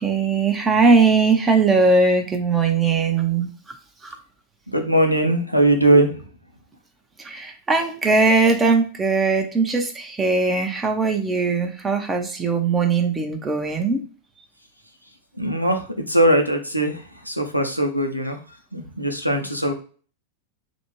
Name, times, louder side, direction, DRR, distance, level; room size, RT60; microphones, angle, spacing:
voice 1, 0.0-3.5 4.0-4.1 7.2-14.0, right 4 dB, 15° right, 4 dB, 0.6 m, -20 dB
voice 2, 4.7-6.1 15.4-17.0 17.3-18.4 18.7-19.7, right 1 dB, 90° left, 3 dB, 0.5 m, -20 dB
2.5 x 2.1 x 3.0 m, 0.40 s
figure-of-eight pair, 90°, 0 cm